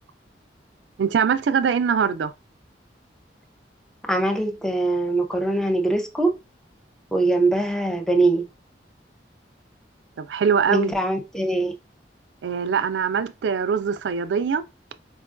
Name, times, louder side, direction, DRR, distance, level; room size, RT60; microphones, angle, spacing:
voice 1, 1.0-2.3 10.2-10.9 12.4-14.6, right 6 dB, 85° right, 0.4 m, -22 dB
voice 2, 4.1-6.3 7.1-8.4 10.7-11.7, right 2 dB, 5° left, 0.4 m, -22 dB
4.3 x 2.2 x 2.4 m
head